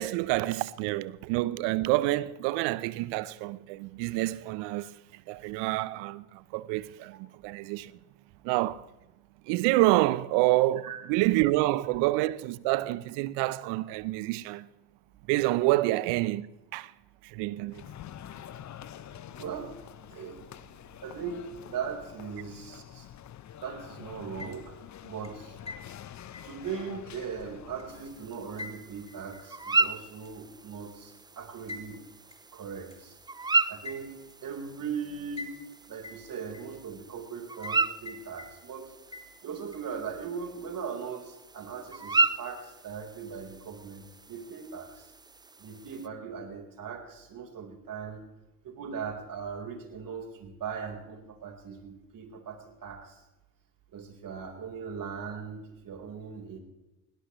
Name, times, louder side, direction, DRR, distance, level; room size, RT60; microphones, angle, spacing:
voice 1, 0.0-7.9 8.4-8.9 9.5-14.7 15.3-16.5 16.7-16.9 17.2-17.8, right 18 dB, 65° right, 0.9 m, -28 dB
sound 1, 17.7-28.3, left 11 dB, 35° left, 0.9 m, -47 dB
voice 2, 19.3-19.7 20.1-20.4 21.0-23.1 23.6-24.8 25.0-25.6 26.4-32.0 32.5-33.2 33.7-35.5 35.9-38.9 39.4-45.1 45.6-48.2 48.6-53.2 53.9-56.6, right 6 dB, 45° right, 4.3 m, -39 dB
sound 2, 24.4-24.8 25.2-28.1 28.6-29.9 30.2-30.3 31.7-31.9 32.3-32.4 32.9-33.0 33.8-34.4 35.4-35.8 36.0-37.0 37.6-37.8 38.1-38.8 39.1-39.8, left 2 dB, 15° left, 4.8 m, -44 dB
sound 3, 27.9-46.1, right 3 dB, 10° right, 0.5 m, -34 dB
21.0 x 17.5 x 3.2 m
hypercardioid pair, 70°, 47 cm